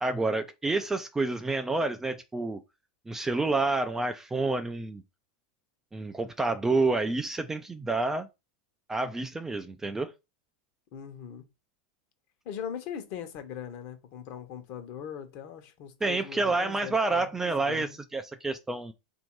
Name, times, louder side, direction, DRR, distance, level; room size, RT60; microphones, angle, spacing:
voice 1, 0.0-2.6 3.1-5.0 5.9-8.3 8.9-10.1 16.0-18.9, right 3 dB, 10° right, 0.4 m, -29 dB
voice 2, 10.9-11.5 12.4-18.0, left 8 dB, 50° left, 1.0 m, -40 dB
3.5 x 2.7 x 4.5 m
supercardioid pair, 135°, 4 cm